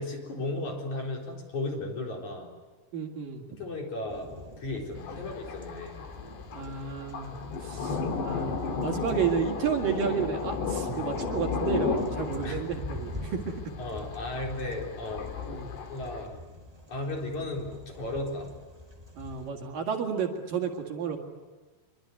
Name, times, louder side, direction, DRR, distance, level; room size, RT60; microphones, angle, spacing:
voice 1, 0.0-2.5 3.6-4.3 4.6-6.0 7.7-8.0 10.9-11.1 12.4-12.9 13.8-15.5 15.9-16.4 16.9-18.5, left 2 dB, 45° left, 0 dB, 5.3 m, -35 dB
voice 2, 2.9-3.4 5.1-5.3 6.5-7.3 7.6-13.6 15.5-15.7 19.2-21.2, right 7 dB, 60° right, 3 dB, 3.4 m, -31 dB
sound 1, 4.1-19.5, left 1 dB, 10° right, 1.2 m, -45 dB
Thunder, 5.0-16.3, left 5 dB, 90° left, 4.7 m, -34 dB
25.5 x 24.0 x 9.6 m, 1.3 s
omnidirectional pair, 4.7 m